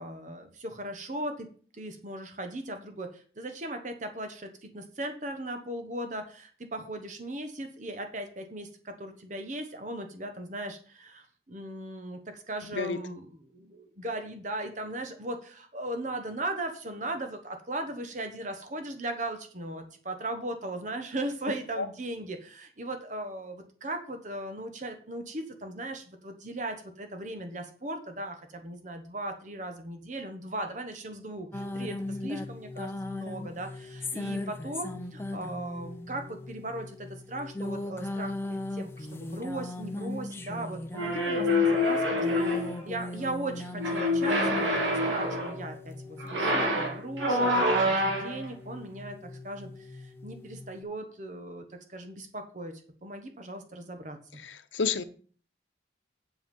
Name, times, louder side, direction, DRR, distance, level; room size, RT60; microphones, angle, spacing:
voice 1, 0.0-1.5 1.7-44.7 45.1-54.4, right 1 dB, 40° right, 1.1 m, -38 dB
sound 1, 31.5-50.8, left 2 dB, 15° left, 0.7 m, -39 dB
sound 2, 41.0-42.8 43.8-45.6 46.2-48.5, left 1 dB, 85° right, 3.1 m, -26 dB
voice 2, 54.4-55.0, left 5 dB, 85° left, 0.8 m, -30 dB
7.9 x 7.2 x 5.4 m
head